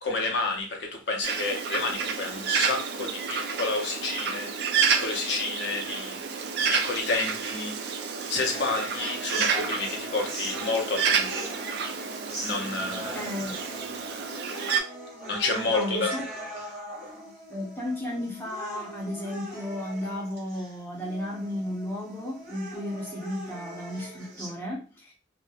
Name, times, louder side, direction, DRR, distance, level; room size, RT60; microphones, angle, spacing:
voice 1, 0.0-8.0 8.3-11.5 12.4-13.3 15.3-16.1, left 3 dB, 60° left, 0.5 m, -30 dB
Bird, 1.2-14.8, right 6 dB, 55° right, 0.3 m, -30 dB
sound 1, 8.5-24.5, right 1 dB, 15° right, 1.0 m, -41 dB
voice 2, 13.1-13.5 15.7-16.3 16.9-17.0 17.5-25.1, left 1 dB, 10° left, 0.7 m, -34 dB
2.8 x 2.1 x 2.3 m
head